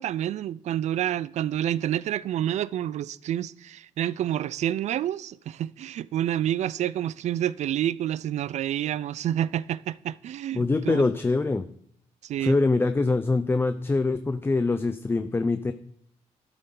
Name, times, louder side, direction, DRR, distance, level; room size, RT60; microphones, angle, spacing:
voice 1, 0.0-11.0 12.2-12.6, right 11 dB, 65° right, 0.4 m, -28 dB
voice 2, 10.5-11.7 12.4-15.7, left 3 dB, 20° left, 0.6 m, -24 dB
12.5 x 11.5 x 3.9 m
cardioid pair, 105°, 12 cm